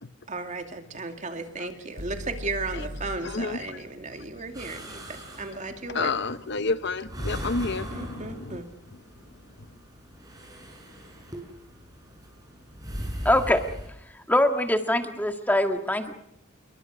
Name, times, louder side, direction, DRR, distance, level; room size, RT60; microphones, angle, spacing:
voice 1, 0.3-6.1 7.9-8.7, right 3 dB, 35° right, 6 dB, 2.5 m, -35 dB
sound 1, 2.0-5.9, equal, 85° right, 4.9 m, -41 dB
voice 2, 3.2-3.8 5.9-8.6, left 3 dB, 55° left, 12 dB, 0.9 m, -30 dB
sound 2, 4.5-13.9, equal, 20° right, 5.9 m, -40 dB
voice 3, 13.3-13.6 14.3-16.1, left 1 dB, 10° left, 6 dB, 1.7 m, -23 dB
28.0 x 23.0 x 6.4 m, 0.72 s
head